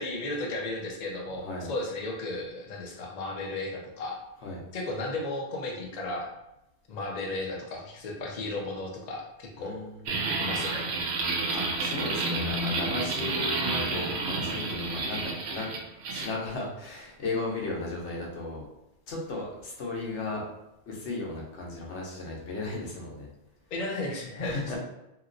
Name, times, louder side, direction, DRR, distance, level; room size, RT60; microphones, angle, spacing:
voice 1, 0.0-4.2 4.7-6.3 6.9-9.8 10.4-10.9 23.7-24.8, left 2 dB, 45° left, 0 dB, 0.6 m, -34 dB
voice 2, 9.6-9.9 10.3-10.4 11.5-15.7 16.1-18.6 19.1-20.4 20.9-23.3 24.4-24.8, left 2 dB, 80° left, -2 dB, 1.1 m, -35 dB
sound 1, 10.1-16.3, right 3 dB, 70° right, 0.8 m, -30 dB
2.9 x 2.8 x 2.6 m, 0.89 s
omnidirectional pair, 1.2 m